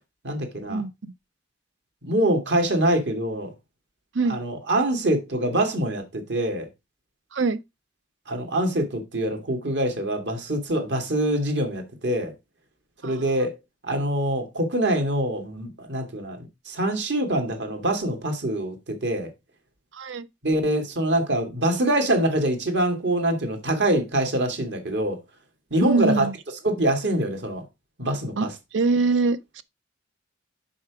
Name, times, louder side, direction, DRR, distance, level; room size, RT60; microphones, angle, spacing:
voice 1, 0.2-0.8 2.0-3.5 4.3-6.7 8.3-12.3 13.0-13.5 13.8-19.3 20.4-25.2 25.7-26.3 26.6-27.6 28.0-28.5, right 1 dB, 65° right, 2.2 m, -24 dB
voice 2, 13.0-13.4 19.9-20.3 25.8-26.3 28.4-29.6, right 3 dB, 85° right, 0.7 m, -24 dB
6.3 x 5.9 x 4.8 m
head